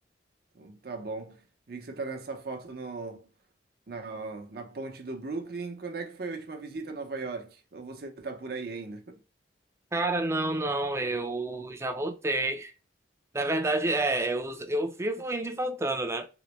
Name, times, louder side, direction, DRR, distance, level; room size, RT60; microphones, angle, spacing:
voice 1, 0.5-3.3 3.9-9.2, right 3 dB, 55° right, 0.7 m, -38 dB
voice 2, 9.9-12.7 13.3-16.3, right 2 dB, 15° right, 0.4 m, -29 dB
3.8 x 2.0 x 3.0 m
head